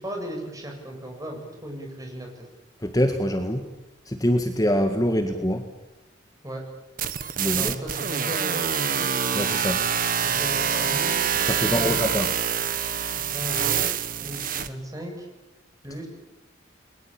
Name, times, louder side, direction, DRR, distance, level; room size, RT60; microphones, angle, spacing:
voice 1, 0.0-2.5 6.4-6.6 7.6-9.1 10.2-11.2 11.6-12.0 13.2-13.8 14.2-15.3 15.8-16.1, equal, 20° right, 1 dB, 7.7 m, -36 dB
voice 2, 2.8-3.7 4.1-5.7 7.4-7.8 9.3-9.8 11.4-12.3, equal, 20° left, 5 dB, 1.7 m, -24 dB
sound 1, 7.0-14.7, right 8 dB, 45° right, 1.6 m, -26 dB
30.0 x 22.5 x 8.9 m, 0.98 s
head